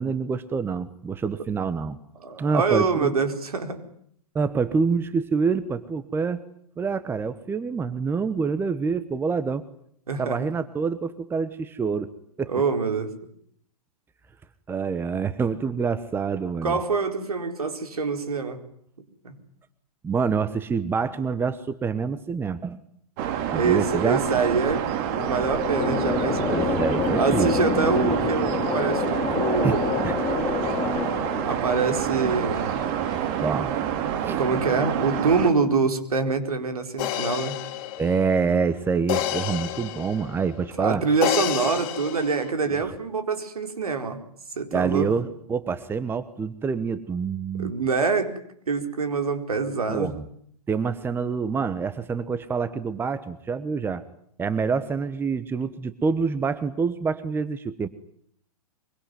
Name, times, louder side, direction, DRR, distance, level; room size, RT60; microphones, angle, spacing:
voice 1, 0.0-2.0 2.4-3.1 4.3-6.4 6.8-9.6 10.2-12.1 12.4-12.5 14.7-16.8 20.0-22.8 23.5-24.2 26.5-27.5 29.3-29.4 29.6-30.2 33.4-33.7 34.2-34.4 38.0-41.0 42.7-42.9 44.7-47.7 49.9-50.2 50.7-54.0 54.4-57.9, right 5 dB, 10° right, 14 dB, 1.2 m, -26 dB
voice 2, 2.2-3.8 10.1-10.5 12.5-13.1 16.6-18.6 19.2-19.3 23.6-26.4 26.9-29.9 31.4-32.9 34.4-37.6 40.8-44.2 44.6-45.1 47.6-48.4 48.7-50.1, right 4 dB, 70° right, 6 dB, 4.4 m, -25 dB
sound 1, 23.2-35.5, right 9 dB, 40° right, 2.9 m, -28 dB
sound 2, 24.8-33.2, left 5 dB, 20° left, 5.5 m, -28 dB
sound 3, 37.0-40.5 41.2-42.5, left 13 dB, 40° left, 2.9 m, -29 dB
24.0 x 23.5 x 9.5 m, 0.66 s
figure-of-eight pair, 110°, 20 cm